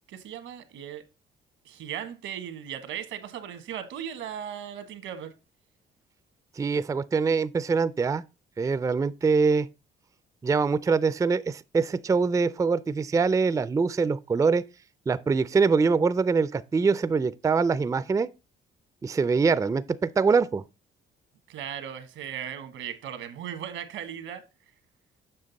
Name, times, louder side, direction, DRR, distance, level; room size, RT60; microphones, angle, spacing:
voice 1, 0.1-1.0 1.6-5.3 21.5-24.4, right 9 dB, 90° right, 1.3 m, -37 dB
voice 2, 6.6-8.2 8.6-9.7 10.4-14.6 15.1-18.3 19.0-20.6, right 4 dB, 15° right, 0.3 m, -24 dB
7.6 x 5.8 x 4.0 m
cardioid pair, 90°, 20 cm